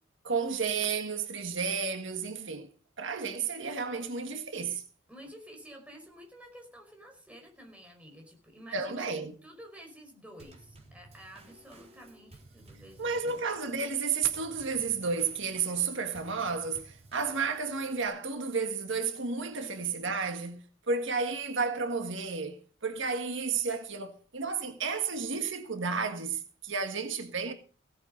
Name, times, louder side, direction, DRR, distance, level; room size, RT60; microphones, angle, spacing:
voice 1, 0.2-2.7 3.0-4.8 8.7-9.3 13.0-27.5, right 5 dB, 65° right, 1.6 m, -32 dB
voice 2, 5.1-13.4 19.6-19.7, equal, 5° right, 5.0 m, -51 dB
Drum kit / Snare drum / Bass drum, 10.4-18.1, right 2 dB, 30° right, 3.9 m, -55 dB
17.0 x 9.3 x 5.2 m
head